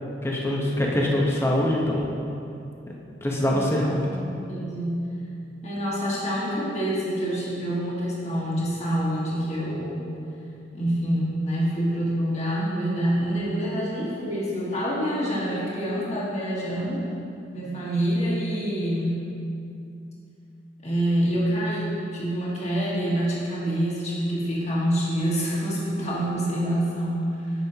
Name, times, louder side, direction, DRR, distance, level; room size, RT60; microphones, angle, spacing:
voice 1, 0.2-2.1 3.2-3.9, left 1 dB, 15° left, -2 dB, 0.8 m, -23 dB
voice 2, 3.5-3.8 4.4-5.1 5.6-10.1 10.7-17.0 17.5-19.2 20.8-27.5, equal, 40° left, -6 dB, 1.6 m, -26 dB
9.1 x 6.2 x 2.8 m, 2.7 s
head